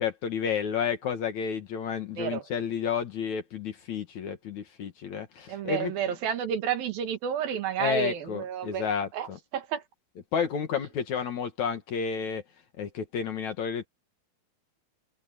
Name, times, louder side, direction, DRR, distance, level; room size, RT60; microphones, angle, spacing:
voice 1, 0.0-5.9 7.8-9.4 10.3-12.4 12.8-13.9, left 7 dB, 55° left, 2.6 m, -31 dB
voice 2, 5.5-9.8, right 8 dB, 70° right, 3.4 m, -31 dB
omnidirectional pair, 4.4 m